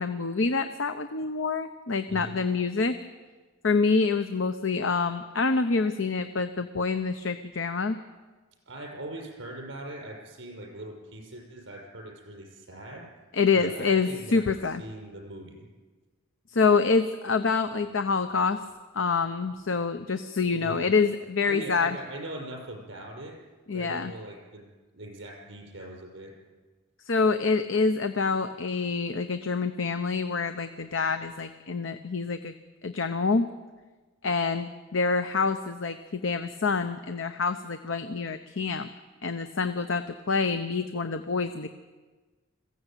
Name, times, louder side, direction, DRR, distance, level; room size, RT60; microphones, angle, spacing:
voice 1, 0.0-3.0 3.6-8.0 13.3-14.8 16.5-18.6 18.9-22.0 23.7-24.1 27.1-32.5 32.8-33.5 34.2-38.9 39.2-41.7, left 4 dB, 70° left, 9 dB, 0.9 m, -26 dB
voice 2, 8.7-13.1 13.5-15.7 20.5-20.9 21.5-23.4 23.7-26.3, right 1 dB, 65° right, 1 dB, 6.0 m, -41 dB
21.5 x 15.5 x 9.1 m, 1.3 s
head